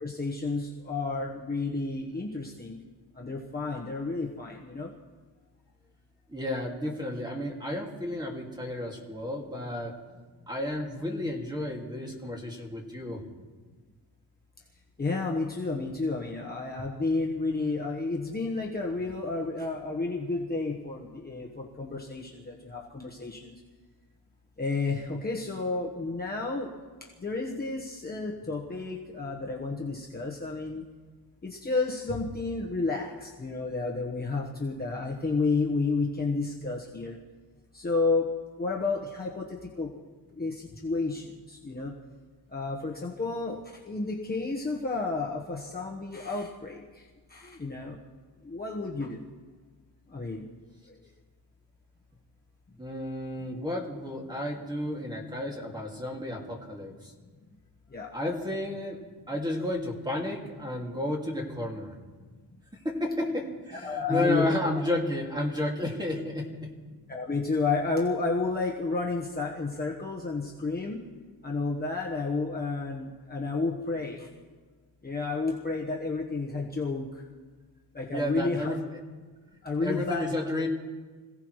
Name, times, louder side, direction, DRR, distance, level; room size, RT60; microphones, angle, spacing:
voice 1, 0.0-2.8 3.2-4.9 15.0-23.5 24.6-26.7 27.2-30.8 31.4-37.2 37.7-38.3 38.6-39.9 40.4-41.2 41.5-41.9 42.5-43.6 43.9-46.8 47.3-48.0 48.4-49.2 50.1-50.4 57.9-58.1 63.8-64.5 67.1-71.0 71.4-74.3 75.0-77.1 77.9-78.7 79.6-80.3, left 3 dB, 20° left, -2 dB, 1.3 m, -31 dB
voice 2, 6.3-10.0 10.5-13.2 52.8-57.1 58.1-59.0 59.3-61.9 62.8-66.7 78.1-79.0 79.8-80.7, left 1 dB, 10° right, -1 dB, 2.3 m, -32 dB
26.0 x 16.5 x 3.2 m, 1.4 s
wide cardioid pair, 150°, 42 cm